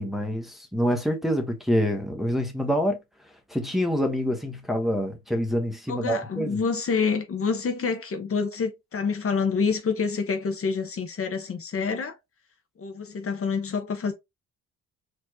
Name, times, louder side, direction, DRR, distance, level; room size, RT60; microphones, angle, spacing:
voice 1, 0.0-3.0 3.5-6.6, equal, ahead, 1.2 m, -26 dB
voice 2, 5.9-12.2 12.8-14.1, left 5 dB, 45° left, 1.1 m, -27 dB
4.3 x 3.2 x 2.9 m
cardioid pair, 90°, 30 cm